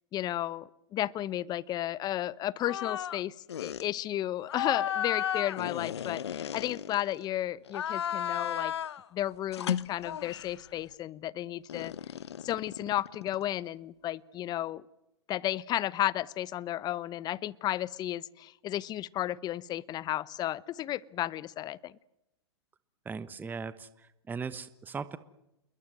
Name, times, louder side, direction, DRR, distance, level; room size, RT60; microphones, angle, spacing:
voice 1, 0.1-8.7 9.1-11.9 12.4-14.8 15.3-22.0, left 13 dB, 30° left, 21 dB, 0.9 m, -33 dB
sound 1, 2.6-3.2 3.5-3.9 4.5-7.2 7.7-9.0 9.5-10.6 11.7-13.5, left 9 dB, 75° left, 1.0 m, -34 dB
voice 2, 23.0-25.2, right 5 dB, 15° right, 14 dB, 1.1 m, -39 dB
28.5 x 22.0 x 7.8 m, 0.88 s
hypercardioid pair, 110°, 14 cm